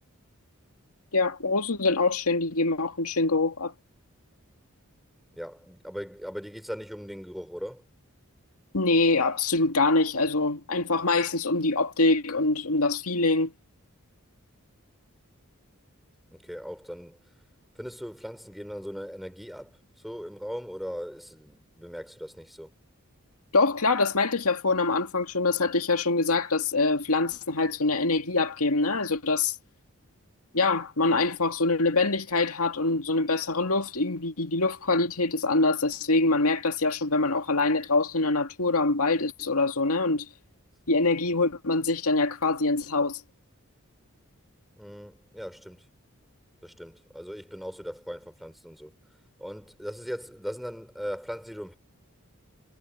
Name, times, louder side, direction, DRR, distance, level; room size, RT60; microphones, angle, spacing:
voice 1, 1.1-3.7 8.7-13.5 23.5-29.6 30.5-40.3 40.9-43.2, left 3 dB, 85° left, 2.1 m, -24 dB
voice 2, 5.3-7.8 16.3-17.2 17.8-19.8 20.0-22.7 44.8-45.9 46.6-48.9 49.4-51.8, equal, ahead, 4.4 m, -39 dB
head